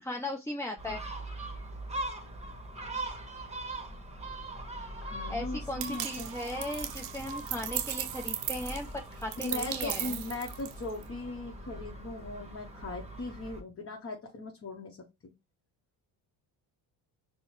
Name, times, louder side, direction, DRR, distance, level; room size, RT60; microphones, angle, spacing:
voice 1, 0.0-1.0 5.3-10.2, left 1 dB, 5° left, 2 dB, 0.4 m, -37 dB
Gull seagull, 0.8-13.6, right 1 dB, 15° right, 1.1 m, -41 dB
voice 2, 5.0-6.4 9.4-15.0, left 2 dB, 30° left, 1 dB, 0.8 m, -39 dB
sound 1, 5.8-11.0, right 13 dB, 90° right, 0.6 m, -37 dB
5.4 x 2.1 x 3.0 m, 0.24 s
supercardioid pair, 65°, 47 cm